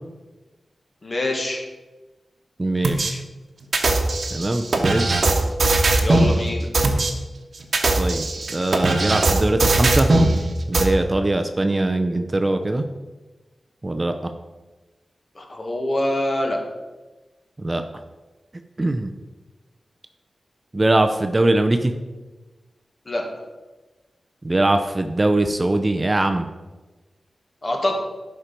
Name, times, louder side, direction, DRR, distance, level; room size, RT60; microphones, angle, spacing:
voice 1, 1.0-1.6 6.0-6.7 15.3-16.6 23.1-23.3 27.6-27.9, left 1 dB, 35° left, 2 dB, 1.6 m, -24 dB
voice 2, 2.6-3.2 4.3-5.3 8.0-10.1 10.7-12.8 13.8-14.3 17.6-17.8 18.8-19.1 20.7-21.9 24.4-26.5, right 2 dB, 25° right, 7 dB, 0.5 m, -21 dB
sound 1, 2.8-3.1 3.7-6.3 6.7-7.1 7.6-10.3 10.7-10.8, right 2 dB, 60° right, 1.1 m, -19 dB
11.0 x 4.5 x 5.2 m, 1.2 s
wide cardioid pair, 105°, 0 cm